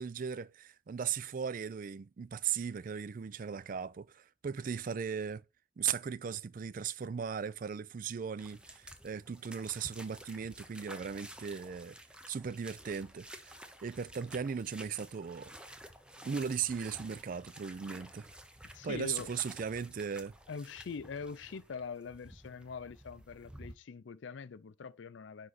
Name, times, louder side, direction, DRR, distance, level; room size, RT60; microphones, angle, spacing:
voice 1, 0.0-5.4 5.8-12.0 12.3-13.5 13.8-15.6 16.2-18.3 18.8-20.3, right 7 dB, 45° right, 0.4 m, -37 dB
sound 1, 8.4-23.8, right 1 dB, 5° right, 0.6 m, -52 dB
voice 2, 18.7-19.3 20.5-25.5, left 5 dB, 75° left, 0.5 m, -43 dB
9.5 x 3.7 x 4.0 m
head